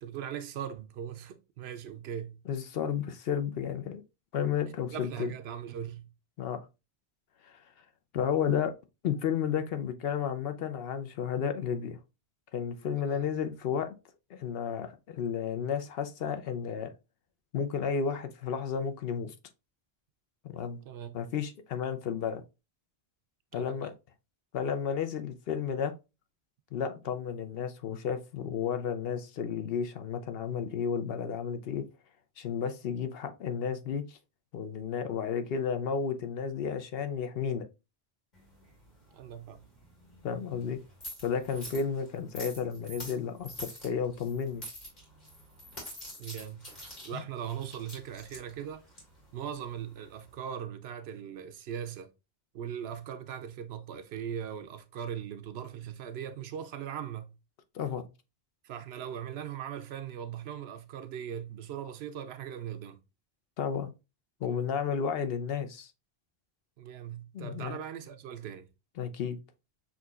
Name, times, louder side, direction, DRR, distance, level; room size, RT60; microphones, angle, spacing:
voice 1, 0.0-2.4 4.9-6.1 13.1-13.3 20.9-21.2 23.5-23.9 39.1-39.6 46.2-46.7 47.0-48.8 49.3-52.1 52.5-57.3 58.6-63.0 66.8-68.7, right 9 dB, 80° right, 0.9 m, -39 dB
voice 2, 2.5-4.0 4.3-5.3 6.4-6.6 7.4-7.6 8.1-8.7 9.0-12.0 12.5-13.9 14.3-16.9 17.5-19.3 20.5-20.8 21.1-22.4 23.5-23.9 24.5-25.9 26.7-31.8 32.4-34.2 34.5-37.7 40.2-40.8 41.2-44.6 47.1-47.2 57.7-58.1 63.6-63.9 64.4-65.9 67.3-67.8 69.0-69.4, left 7 dB, 70° left, 0.8 m, -32 dB
sound 1, 38.3-50.4, equal, 45° left, 1.8 m, -47 dB
6.1 x 2.8 x 2.3 m
omnidirectional pair, 1.1 m